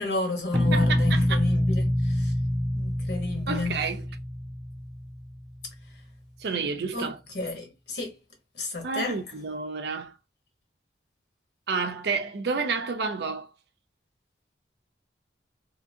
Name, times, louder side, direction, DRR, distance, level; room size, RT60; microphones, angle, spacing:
voice 1, 0.0-2.3 2.7-3.8 6.9-8.2 8.5-9.2, left 2 dB, 60° left, 1.1 m, -32 dB
sound 1, 0.5-5.4, left 1 dB, 5° left, 0.4 m, -26 dB
voice 2, 0.7-1.4 3.5-4.1 6.4-7.2 8.8-10.1 11.7-13.5, right 4 dB, 60° right, 0.5 m, -30 dB
2.8 x 2.6 x 2.6 m
head